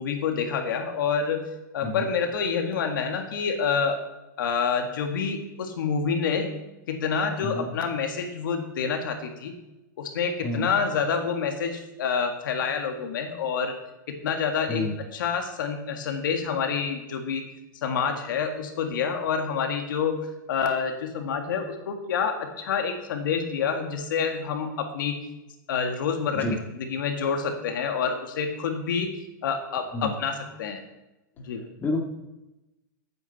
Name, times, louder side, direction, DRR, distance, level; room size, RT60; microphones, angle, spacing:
voice 1, 0.0-1.4 1.7-4.0 4.4-6.5 6.9-9.5 10.0-13.7 14.1-17.4 17.8-25.2 25.7-26.5 26.7-29.1 29.4-30.8 31.4-31.6, left 6 dB, 75° left, 4 dB, 1.8 m, -27 dB
voice 2, 7.4-7.7 10.4-10.7 14.7-14.9 26.3-26.6 29.9-30.1 31.8-32.0, left 2 dB, 20° left, 1 dB, 2.0 m, -28 dB
14.0 x 9.2 x 4.2 m, 0.98 s
hypercardioid pair, 140°, 11 cm